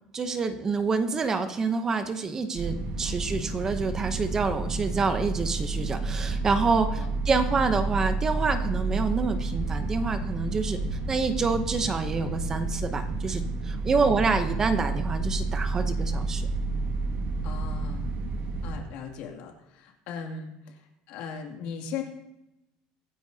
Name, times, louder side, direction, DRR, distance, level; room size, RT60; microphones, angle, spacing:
voice 1, 0.1-16.5 18.3-18.4, right 4 dB, 20° right, 8 dB, 0.8 m, -27 dB
sound 1, 2.6-18.8, right 3 dB, 50° right, 1.6 m, -30 dB
voice 2, 17.4-18.1 18.6-22.0, left 6 dB, 60° left, 2 dB, 2.4 m, -38 dB
24.0 x 10.0 x 2.8 m, 0.90 s
cardioid pair, 165°, 3 cm